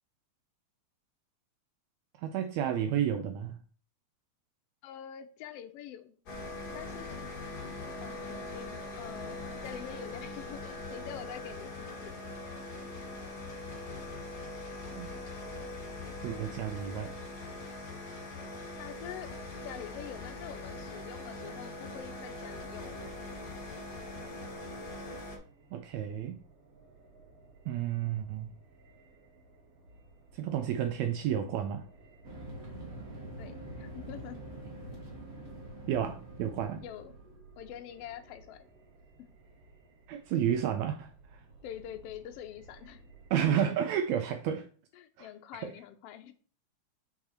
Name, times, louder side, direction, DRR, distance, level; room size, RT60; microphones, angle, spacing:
voice 1, 2.2-3.6 15.0-15.1 16.2-17.2 25.7-26.4 27.7-28.5 30.3-31.8 35.9-36.8 40.1-41.4 43.3-44.7 45.2-45.3 45.6-45.7, right 9 dB, 80° right, 1.8 m, -31 dB
voice 2, 4.8-6.1 6.7-7.2 8.0-12.2 13.0-13.1 18.8-19.3 19.6-22.9 33.4-34.4 36.8-37.1 37.6-38.7 39.2-39.3 41.6-43.0 43.4-43.8 44.9-46.3, left 10 dB, 75° left, 1.5 m, -45 dB
sound 1, 6.3-25.4, left 2 dB, 50° left, 1.3 m, -42 dB
sound 2, 24.5-43.6, right 3 dB, 60° right, 2.0 m, -58 dB
sound 3, 32.2-37.4, right 1 dB, 40° right, 1.3 m, -45 dB
5.8 x 4.8 x 4.2 m
omnidirectional pair, 3.4 m